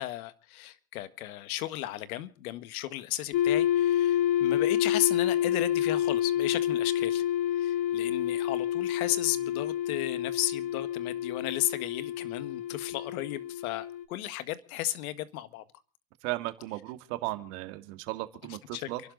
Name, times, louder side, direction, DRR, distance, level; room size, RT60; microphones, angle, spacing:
voice 1, 0.0-7.2 7.6-15.6 18.7-18.9, left 15 dB, 70° left, 1.8 m, -34 dB
sound 1, 3.3-14.0, left 11 dB, 50° left, 1.7 m, -28 dB
voice 2, 16.2-19.0, right 18 dB, 60° right, 2.3 m, -36 dB
29.5 x 11.5 x 3.9 m
supercardioid pair, 140°, 44 cm